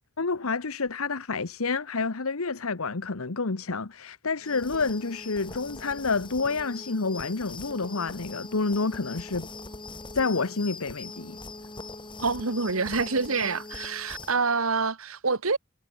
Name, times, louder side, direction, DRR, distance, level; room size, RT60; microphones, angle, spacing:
voice 1, 0.2-9.5 10.1-11.4, left 4 dB, 80° left, 1.2 m, -29 dB
sound 1, 4.4-14.4, left 3 dB, 25° left, 6.3 m, -42 dB
voice 2, 12.2-15.6, right 4 dB, 75° right, 1.9 m, -27 dB
head